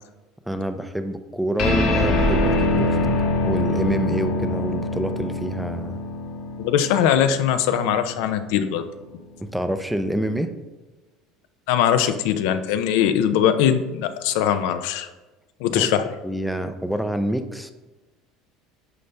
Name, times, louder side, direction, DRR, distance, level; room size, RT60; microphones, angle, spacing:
voice 1, 0.5-6.0 9.4-10.5 15.7-15.9 16.2-17.7, right 1 dB, ahead, 9 dB, 0.5 m, -27 dB
sound 1, 1.6-8.4, left 2 dB, 50° left, 1.5 m, -24 dB
voice 2, 6.6-8.8 11.7-15.1 15.6-16.1, left 9 dB, 80° left, 9 dB, 0.6 m, -21 dB
9.6 x 5.3 x 3.4 m, 1.1 s
cardioid pair, 145°, 0 cm